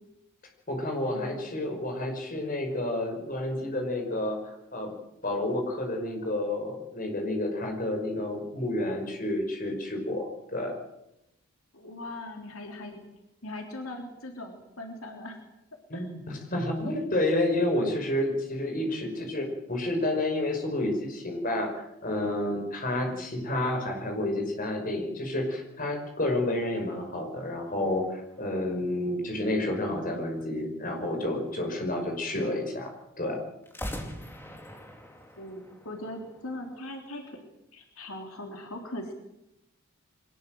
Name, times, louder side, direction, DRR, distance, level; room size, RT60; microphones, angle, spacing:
voice 1, 0.7-4.9 5.2-10.7 15.9-32.9 33.2-33.4, left 1 dB, 40° left, 3 dB, 5.4 m, -30 dB
voice 2, 11.7-13.0 13.4-15.4 15.9-16.1 23.1-23.3 35.4-37.4 37.7-39.1, left 1 dB, 75° left, 3 dB, 3.4 m, -40 dB
sound 1, 27.8-29.6 33.6-36.7, equal, 10° left, 2.5 m, -43 dB
23.0 x 19.5 x 7.8 m, 0.87 s
head